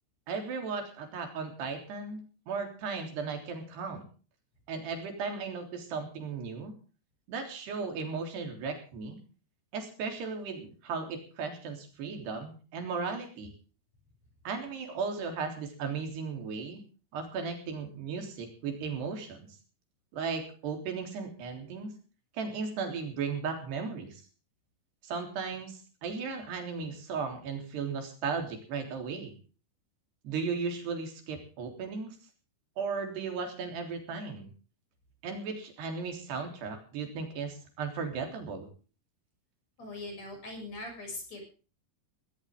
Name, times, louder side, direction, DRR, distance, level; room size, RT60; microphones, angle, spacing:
voice 1, 0.3-4.0 4.7-6.7 7.3-9.2 9.7-13.5 14.5-16.8 17.1-19.5 20.1-22.0 22.3-24.2 25.0-29.3 30.2-32.2 32.8-34.5 35.2-38.7, right 5 dB, 85° right, 4 dB, 5.6 m, -36 dB
voice 2, 39.8-41.4, left 2 dB, 40° left, 3 dB, 8.3 m, -41 dB
18.5 x 18.0 x 3.7 m, 0.38 s
omnidirectional pair, 4.6 m